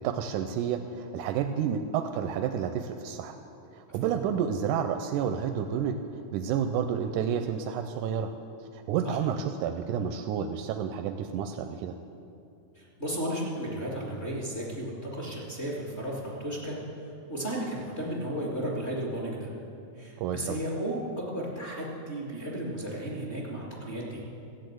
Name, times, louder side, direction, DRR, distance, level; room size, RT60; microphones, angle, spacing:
voice 1, 0.0-3.4 3.7-6.0 6.3-8.3 8.6-11.9 20.2-20.6, right 8 dB, 90° right, 7 dB, 2.1 m, -30 dB
voice 2, 12.8-16.8 17.3-19.5 20.0-24.2, right 1 dB, 25° left, -4 dB, 1.7 m, -34 dB
14.0 x 8.6 x 7.8 m, 2.6 s
omnidirectional pair, 3.5 m